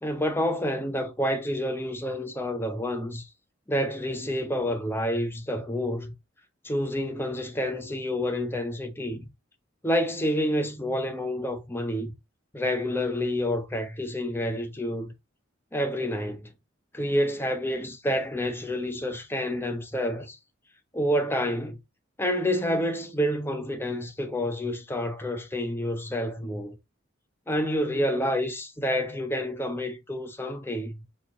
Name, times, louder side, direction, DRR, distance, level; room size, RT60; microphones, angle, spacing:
voice 1, 0.0-3.3 3.7-6.1 6.6-9.2 9.8-12.1 12.5-15.1 15.7-16.5 16.9-20.4 20.9-21.8 22.2-26.8 27.5-31.1, equal, 10° left, 0.7 m, -28 dB
4.4 x 2.9 x 3.6 m
head